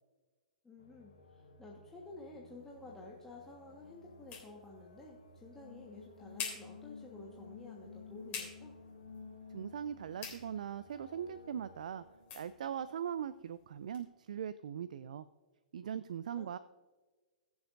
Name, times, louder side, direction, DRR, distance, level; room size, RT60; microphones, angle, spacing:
voice 1, 0.6-8.7 16.3-16.5, left 2 dB, 10° left, -3 dB, 1.4 m, -52 dB
sound 1, 0.8-12.8, left 4 dB, 85° left, 3.6 m, -55 dB
sound 2, 2.6-14.1, left 6 dB, 35° left, 3.5 m, -51 dB
voice 2, 9.5-12.0 12.3-15.3 15.7-16.6, right 8 dB, 70° right, 13 dB, 0.4 m, -40 dB
21.0 x 7.1 x 2.6 m, 1.3 s
hypercardioid pair, 115°, 4 cm